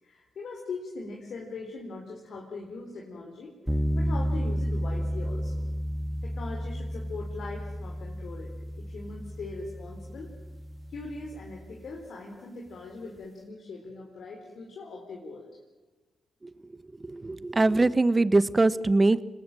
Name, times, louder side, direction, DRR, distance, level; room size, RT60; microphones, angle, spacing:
voice 1, 0.0-5.7 6.2-10.3 10.9-15.6, left 3 dB, 70° left, -1 dB, 4.4 m, -41 dB
sound 1, 3.7-11.8, equal, ahead, 1.7 m, -32 dB
voice 2, 17.0-19.2, right 2 dB, 30° right, 16 dB, 1.2 m, -22 dB
26.0 x 19.5 x 9.1 m, 1.2 s
supercardioid pair, 55°, 0 cm